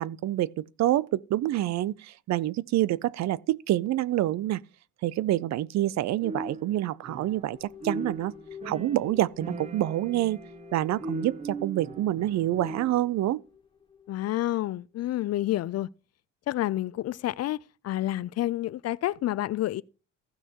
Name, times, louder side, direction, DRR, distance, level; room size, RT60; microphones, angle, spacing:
voice 1, 0.0-4.6 5.0-8.3 8.6-10.4 10.7-13.4, right 14 dB, 65° right, 0.5 m, -27 dB
sound 1, 6.2-7.5 7.8-13.1, right 2 dB, 25° right, 0.7 m, -39 dB
sound 2, 7.1-14.7, left 8 dB, 20° left, 0.9 m, -50 dB
voice 2, 14.1-15.9 16.5-17.6 17.8-19.8, left 14 dB, 60° left, 0.4 m, -29 dB
15.0 x 6.3 x 2.9 m
cardioid pair, 145°, 29 cm